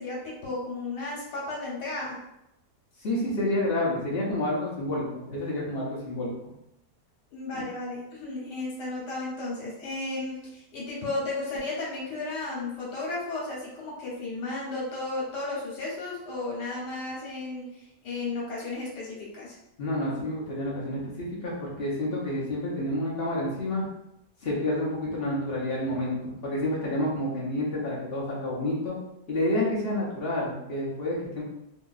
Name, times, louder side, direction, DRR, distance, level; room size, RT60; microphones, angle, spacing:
voice 1, 0.0-2.2 7.3-19.5, left 2 dB, 75° left, -4 dB, 1.6 m, -34 dB
voice 2, 3.0-6.3 7.5-7.6 19.8-23.9 24.4-29.0 29.3-31.4, left 1 dB, 50° left, -5 dB, 0.8 m, -29 dB
2.9 x 2.7 x 2.3 m, 0.83 s
omnidirectional pair, 1.8 m